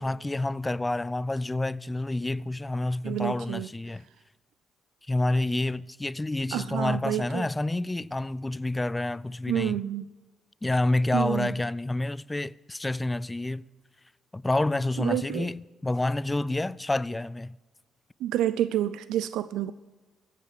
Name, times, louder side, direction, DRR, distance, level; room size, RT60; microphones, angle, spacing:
voice 1, 0.0-4.1 5.1-9.8 10.6-13.6 14.3-17.6, left 2 dB, 15° left, 0.3 m, -28 dB
voice 2, 3.0-3.7 6.5-7.5 9.5-10.0 11.1-11.5 15.0-15.5 18.2-19.7, right 12 dB, 85° right, 0.3 m, -29 dB
15.5 x 8.5 x 6.6 m
cardioid pair, 90°, 0 cm